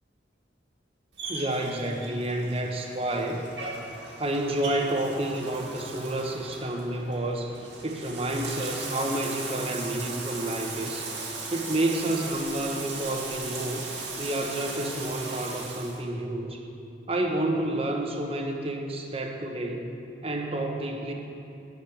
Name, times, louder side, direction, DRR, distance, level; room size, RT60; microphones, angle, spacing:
Bathtub (filling or washing), 1.1-16.0, right 3 dB, 75° right, 1.8 m, -38 dB
voice 1, 1.3-3.4 4.2-11.1 11.5-13.8 14.2-16.6 17.1-19.9 20.2-21.1, right 1 dB, 30° right, 2 dB, 1.0 m, -30 dB
9.9 x 6.6 x 8.5 m, 2.6 s
head